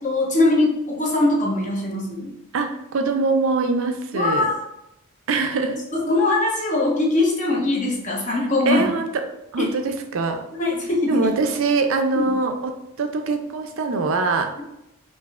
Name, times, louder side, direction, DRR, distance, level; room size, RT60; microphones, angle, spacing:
voice 1, 0.0-2.3 4.1-4.6 5.9-8.8 9.6-9.7 10.6-11.3 12.2-12.3, left 2 dB, 35° left, -2 dB, 0.9 m, -21 dB
voice 2, 2.5-4.5 5.3-5.8 8.3-9.2 9.5-10.4 11.1-14.5, right 3 dB, 65° right, 5 dB, 0.5 m, -23 dB
4.8 x 2.6 x 2.4 m, 0.84 s
head